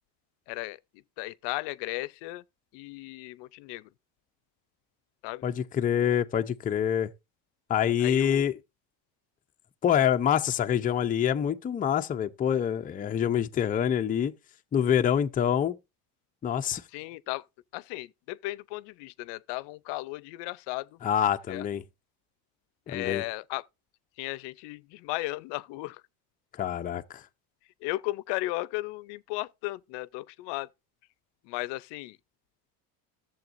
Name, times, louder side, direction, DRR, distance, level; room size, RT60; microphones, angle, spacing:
voice 1, 0.5-0.8 1.2-2.4 2.7-3.9 5.2-5.4 8.0-8.5 16.9-17.4 17.7-21.0 21.5-21.7 22.9-23.6 24.2-26.0 27.8-30.7 31.4-32.2, left 20 dB, 75° left, 0.6 m, -35 dB
voice 2, 5.4-7.1 7.7-8.6 9.8-14.3 14.7-15.8 16.4-16.8 21.0-21.8 22.9-23.2 26.6-27.2, left 9 dB, 20° left, 0.5 m, -26 dB
13.5 x 7.1 x 2.5 m
cardioid pair, 125°, 42 cm